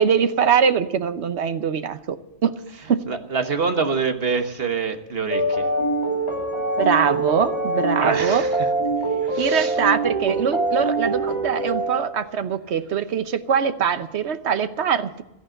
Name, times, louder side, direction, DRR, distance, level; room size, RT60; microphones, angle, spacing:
voice 1, 0.0-2.2 2.4-2.5 2.9-3.0 6.8-8.4 9.4-15.2, right 7 dB, 80° right, 11 dB, 1.2 m, -22 dB
voice 2, 3.1-5.7 8.0-8.7 9.2-9.8, right 5 dB, 60° right, 7 dB, 1.6 m, -25 dB
sound 1, 5.3-12.3, right 2 dB, 25° left, 2.5 m, -24 dB
14.5 x 10.5 x 7.7 m, 0.92 s
omnidirectional pair, 1.1 m